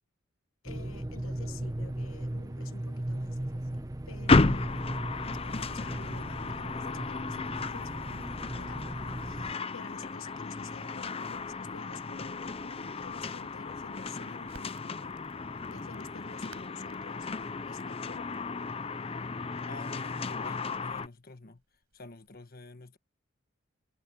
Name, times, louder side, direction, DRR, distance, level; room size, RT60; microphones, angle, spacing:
voice 1, 0.6-5.1 5.4-15.2 15.7-18.3, left 4 dB, 75° left, 1.2 m, -50 dB
sound 1, 0.7-9.5, right 1 dB, 15° right, 0.8 m, -37 dB
sound 2, 4.3-21.1, left 3 dB, 25° left, 0.6 m, -33 dB
Crackle, 14.5-22.4, right 3 dB, 80° right, 7.0 m, -60 dB
voice 2, 19.7-21.6 21.9-23.0, left 3 dB, 45° left, 1.3 m, -48 dB
head